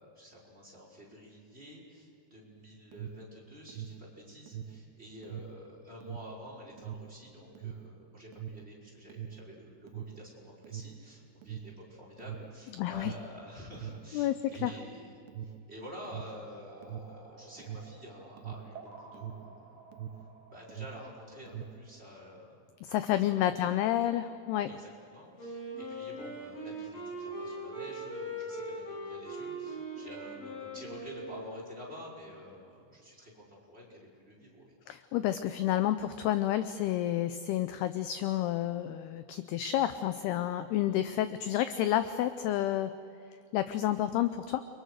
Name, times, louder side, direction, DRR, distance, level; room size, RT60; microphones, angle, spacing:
voice 1, 0.0-19.6 20.5-22.7 23.4-24.0 24.7-34.8, equal, 15° right, -2 dB, 5.2 m, -49 dB
Alarm, 2.6-20.4 20.6-21.9, right 9 dB, 75° right, 2.9 m, -43 dB
voice 2, 12.8-13.1 14.1-14.3 14.6-14.7 22.8-24.7 34.9-42.9 43.5-44.6, left 12 dB, 80° left, 11 dB, 2.4 m, -30 dB
sound 1, 16.7-22.0, right 4 dB, 35° right, 7.3 m, -54 dB
Wind instrument woodwind instrument, 25.4-32.0, right 1 dB, 50° left, 9.5 m, -41 dB
29.5 x 24.0 x 6.6 m, 2.6 s
omnidirectional pair, 5.3 m